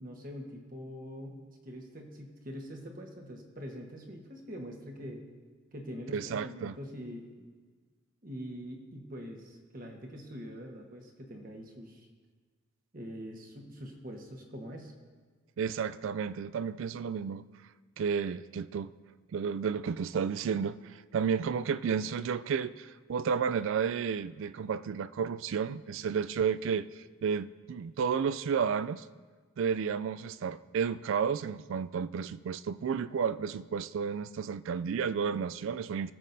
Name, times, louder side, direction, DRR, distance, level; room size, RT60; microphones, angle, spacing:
voice 1, 0.0-5.2 5.7-7.3 8.2-12.1 12.9-14.9, equal, 40° right, 1 dB, 1.2 m, -44 dB
voice 2, 6.1-6.7 15.6-17.5 18.0-18.9 19.3-29.1 29.6-36.1, right 6 dB, 65° right, 16 dB, 0.3 m, -32 dB
21.0 x 7.3 x 2.7 m, 1.5 s
head